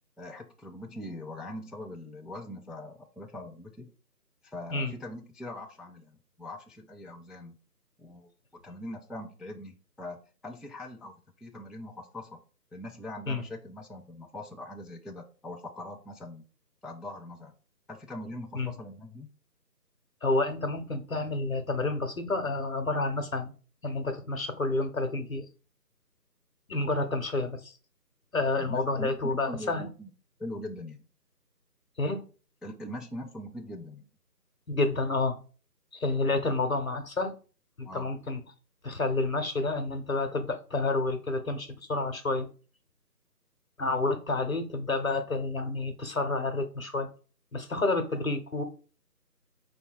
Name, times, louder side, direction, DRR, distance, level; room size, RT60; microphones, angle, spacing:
voice 1, 0.2-3.9 4.4-6.1 6.4-7.6 8.0-8.3 8.6-12.4 12.7-16.4 16.8-17.5 17.9-19.3 28.6-30.1 30.4-31.1 32.6-34.1 37.9-38.1, left 1 dB, ahead, 0 dB, 0.4 m, -42 dB
voice 2, 20.2-23.5 23.8-25.4 26.7-27.7 28.3-29.9 32.0-32.2 34.7-35.4 35.9-37.3 37.8-38.4 38.8-42.5 43.8-47.1 47.5-48.6, left 3 dB, 55° left, 7 dB, 0.8 m, -29 dB
5.0 x 2.2 x 4.6 m, 0.38 s
figure-of-eight pair, 180°, 50 cm